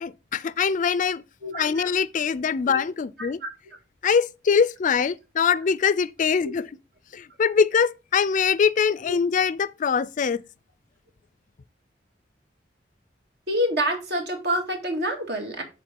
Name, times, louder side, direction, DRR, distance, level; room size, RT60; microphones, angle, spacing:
voice 1, 0.0-1.2 1.5-3.4 4.0-6.7 7.1-10.4, left 6 dB, 45° left, 0.4 m, -23 dB
voice 2, 1.4-1.9 2.7-2.8 6.4-6.5 9.0-9.2 13.5-15.6, equal, 65° right, 2.1 m, -27 dB
6.8 x 4.3 x 5.2 m
head